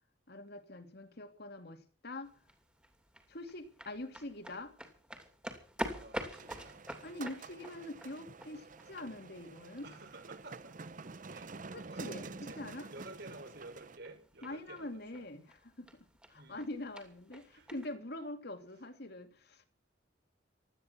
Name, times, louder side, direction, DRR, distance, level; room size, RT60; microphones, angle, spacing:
voice 1, 0.3-2.3 3.3-4.7 7.0-9.9 11.7-12.9 14.4-15.9 16.3-19.7, left 1 dB, 60° left, 7 dB, 2.6 m, -44 dB
sound 1, 2.2-17.9, equal, 5° right, 2.7 m, -48 dB
voice 2, 5.9-6.8 9.8-10.8 11.3-11.5 11.9-15.2 16.3-16.7 17.5-17.7, right 2 dB, 60° right, 7 dB, 4.7 m, -52 dB
sound 2, 6.3-14.0, right 3 dB, 45° right, 0.8 m, -48 dB
16.5 x 13.0 x 6.0 m, 0.40 s
head